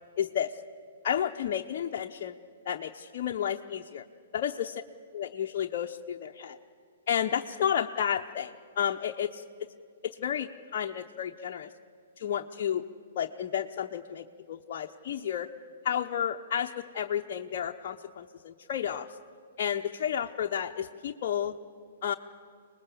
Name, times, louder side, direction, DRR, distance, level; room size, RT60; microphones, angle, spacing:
voice 1, 0.2-0.6 1.0-2.4 2.7-4.1 4.3-4.8 5.1-6.6 7.1-9.4 10.0-11.7 12.2-12.8 13.1-15.5 15.8-19.1 19.6-21.5 22.0-22.1, left 9 dB, 50° left, 2 dB, 0.7 m, -31 dB
24.5 x 20.0 x 6.9 m, 2.2 s
hypercardioid pair, 130°, 0 cm